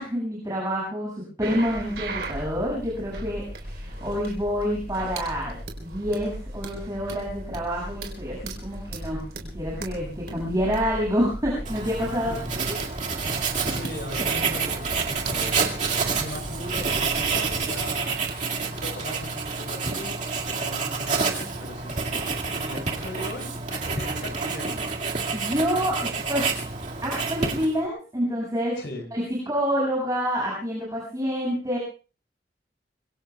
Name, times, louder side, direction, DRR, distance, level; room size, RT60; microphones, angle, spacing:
voice 1, 0.0-9.2 9.5-12.4 12.7-12.8 25.3-26.5 27.0-28.8 29.1-31.8, equal, 20° right, -5 dB, 7.0 m, -28 dB
sound 1, 1.4-17.8 18.3-18.4, right 1 dB, 65° right, 3.9 m, -38 dB
Writing, 11.6-27.9, right 4 dB, 45° right, 2.2 m, -28 dB
voice 2, 13.7-24.8 28.8-29.0, left 1 dB, 70° left, 2 dB, 6.6 m, -39 dB
25.5 x 23.5 x 2.4 m, 0.38 s
head